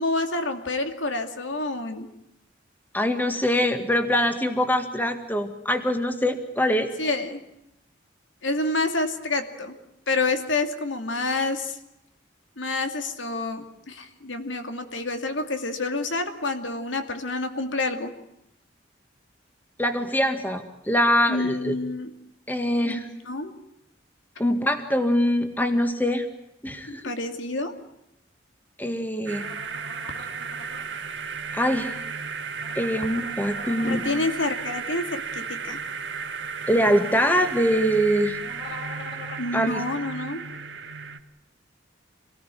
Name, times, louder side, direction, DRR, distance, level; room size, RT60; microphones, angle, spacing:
voice 1, 0.0-2.1 7.0-7.4 8.4-9.7 10.1-11.8 12.6-18.1 21.3-22.1 22.8-23.5 26.9-27.8 33.8-35.8 39.4-40.4, left 2 dB, 80° left, 7 dB, 2.6 m, -28 dB
voice 2, 2.9-6.9 19.8-21.8 22.5-23.1 24.4-26.3 26.6-27.1 28.8-29.5 31.5-32.0 32.8-34.1 36.7-38.4 39.5-39.8, equal, 10° left, 7 dB, 1.9 m, -23 dB
sound 1, 29.3-30.8 32.5-34.3 38.4-39.5, left 2 dB, 60° left, 6.7 m, -42 dB
sound 2, 29.3-41.2, right 5 dB, 70° right, 1.8 m, -34 dB
26.5 x 19.0 x 9.3 m, 0.83 s
head